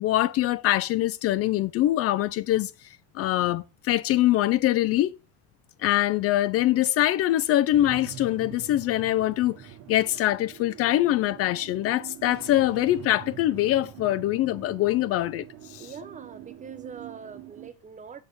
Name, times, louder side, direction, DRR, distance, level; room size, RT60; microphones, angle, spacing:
voice 1, 0.0-2.7 3.1-5.2 5.8-9.6 9.9-15.4 15.7-15.9, left 14 dB, 50° left, 0.4 m, -23 dB
sound 1, 7.7-17.7, right 11 dB, 55° right, 0.9 m, -44 dB
voice 2, 15.8-18.2, right 6 dB, 25° right, 0.7 m, -43 dB
6.0 x 4.2 x 5.1 m
cardioid pair, 115°, 32 cm